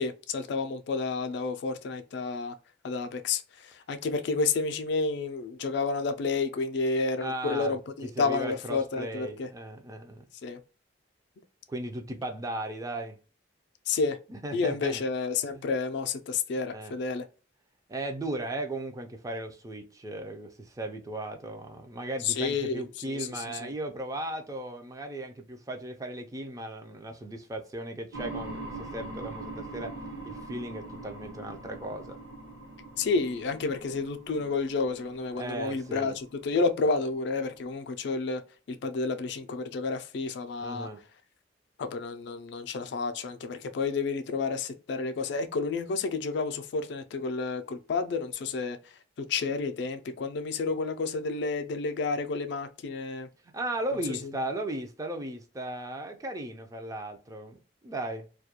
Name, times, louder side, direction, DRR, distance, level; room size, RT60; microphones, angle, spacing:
voice 1, 0.0-2.6 2.8-9.5 10.4-10.6 13.9-14.2 14.5-17.3 22.2-23.7 33.0-38.4 38.7-40.9 41.8-48.8 49.2-53.3 54.1-54.3, left 4 dB, 65° left, 0.3 m, -30 dB
voice 2, 7.2-7.8 8.2-10.2 11.7-13.2 14.3-15.0 15.5-15.6 16.7-17.0 17.9-29.9 30.2-32.2 35.4-36.2 40.6-41.0 53.5-57.6 57.8-58.3, right 1 dB, 20° right, 0.3 m, -36 dB
sound 1, 28.1-37.7, right 2 dB, 65° right, 0.7 m, -43 dB
2.3 x 2.1 x 2.8 m
head